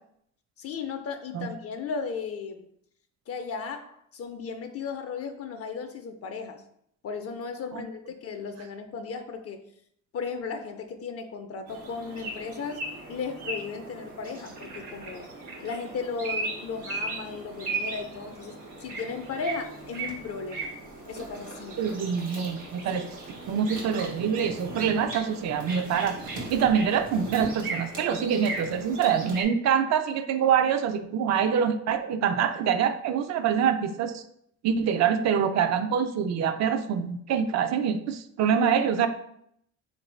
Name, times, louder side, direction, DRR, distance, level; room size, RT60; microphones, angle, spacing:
voice 1, 0.6-2.7 3.3-6.6 7.0-9.6 10.1-15.3 15.6-20.7 21.1-21.9 22.9-23.1 38.6-38.7 39.0-39.1, left 5 dB, 50° left, 6 dB, 0.4 m, -35 dB
sound 1, 11.7-29.4, right 3 dB, 90° right, 1.0 m, -37 dB
voice 2, 21.8-23.1 23.5-34.2 34.6-39.1, right 7 dB, 60° right, 9 dB, 0.4 m, -25 dB
3.8 x 2.6 x 3.1 m, 0.71 s
cardioid pair, 90°, 30 cm